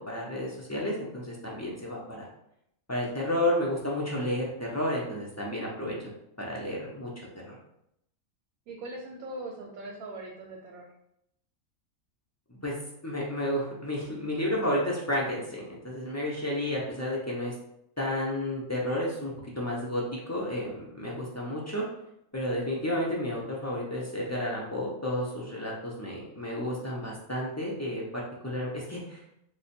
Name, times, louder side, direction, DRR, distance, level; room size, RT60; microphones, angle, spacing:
voice 1, 0.0-2.3 2.9-6.1 6.4-7.1 7.5-7.6 12.6-12.7 13.0-17.5 18.0-21.8 22.3-29.2, left 1 dB, 25° left, -4 dB, 0.3 m, -31 dB
voice 2, 8.7-10.9, right 2 dB, 85° right, 0 dB, 1.1 m, -40 dB
3.4 x 2.1 x 4.2 m, 0.77 s
omnidirectional pair, 1.5 m